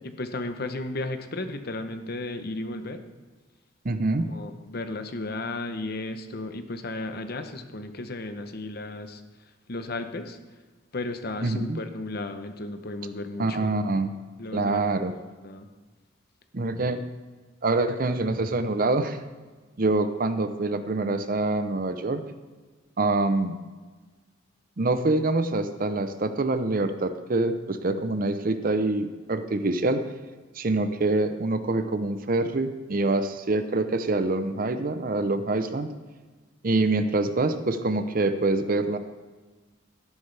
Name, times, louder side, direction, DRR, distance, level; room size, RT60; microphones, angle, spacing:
voice 1, 0.0-3.0 4.3-10.4 10.9-13.7 14.4-14.8 15.4-15.7, left 2 dB, 50° left, 8 dB, 0.8 m, -34 dB
voice 2, 3.8-4.3 11.4-11.8 13.4-14.1 14.5-15.1 16.5-17.1 17.6-19.2 19.8-22.2 23.0-23.6 24.8-30.1 30.6-35.9 36.6-39.0, right 2 dB, 45° right, 10 dB, 0.7 m, -25 dB
13.0 x 11.0 x 3.4 m, 1.3 s
head